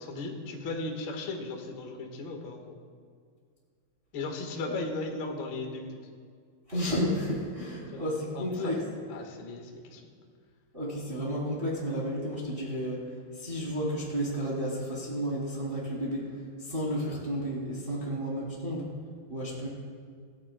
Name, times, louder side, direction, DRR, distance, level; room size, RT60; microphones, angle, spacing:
voice 1, 0.0-2.8 4.1-6.0 7.9-8.0 8.3-8.7 9.1-10.1 18.0-18.1, left 3 dB, 80° left, 1 dB, 1.1 m, -37 dB
voice 2, 6.7-8.8 10.7-18.9 19.3-19.7, equal, 15° right, -5 dB, 2.3 m, -32 dB
26.5 x 13.5 x 2.3 m, 2.1 s
omnidirectional pair, 4.9 m